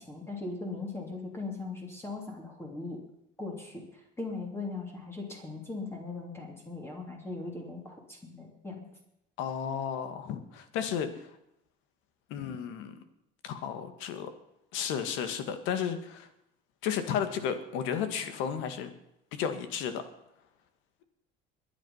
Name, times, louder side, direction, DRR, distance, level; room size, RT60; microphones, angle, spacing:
voice 1, 0.0-3.0 3.4-3.8 4.2-8.8, left 3 dB, 10° left, 0 dB, 3.0 m, -39 dB
voice 2, 9.4-11.3 12.3-12.9 13.4-14.3 14.7-16.3 16.8-18.9 19.3-20.0, left 8 dB, 70° left, 9 dB, 2.0 m, -33 dB
22.0 x 9.2 x 5.7 m, 0.81 s
cardioid pair, 120°, 20 cm